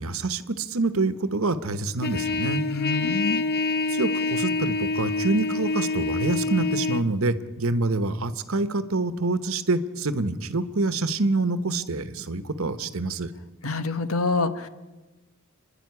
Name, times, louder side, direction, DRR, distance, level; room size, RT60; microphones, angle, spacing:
voice 1, 0.0-2.6 3.9-13.3, right 3 dB, 70° right, 12 dB, 1.1 m, -26 dB
Trumpet, 2.0-7.0, left 3 dB, 45° left, 0.7 m, -26 dB
voice 2, 2.7-3.4 13.6-14.7, left 3 dB, 75° left, 11 dB, 1.2 m, -26 dB
29.5 x 10.5 x 9.5 m, 1.2 s
head